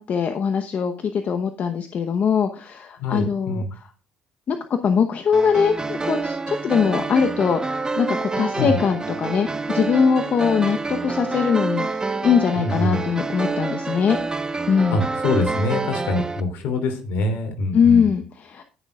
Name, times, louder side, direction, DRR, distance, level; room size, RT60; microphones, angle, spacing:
voice 1, 0.0-3.8 4.5-4.6 4.8-14.2 14.7-15.0 17.7-18.6, left 6 dB, 55° left, 6 dB, 0.9 m, -21 dB
voice 2, 3.0-3.7 8.6-8.8 12.6-13.0 14.9-18.1, left 2 dB, 75° left, 5 dB, 3.0 m, -24 dB
sound 1, 5.3-16.4, right 3 dB, 25° right, 1.1 m, -27 dB
18.0 x 6.7 x 2.4 m, 0.35 s
supercardioid pair, 65°, 3 cm